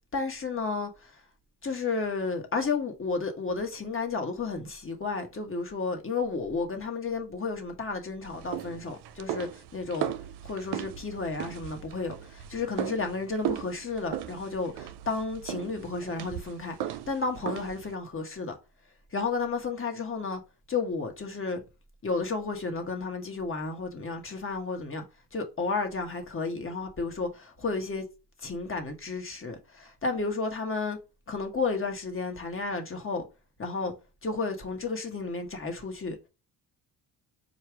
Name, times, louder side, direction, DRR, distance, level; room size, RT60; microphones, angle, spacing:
voice 1, 0.1-1.2 1.6-10.1 10.4-18.5 19.1-20.4 20.7-21.6 22.0-25.0 25.3-28.0 28.4-31.0 31.3-33.2 33.6-33.9 34.2-36.2, left 4 dB, 30° left, 1.3 m, -32 dB
sound 1, 8.2-18.0, right 11 dB, 65° right, 0.5 m, -37 dB
4.6 x 2.4 x 4.5 m
supercardioid pair, 70°, 44 cm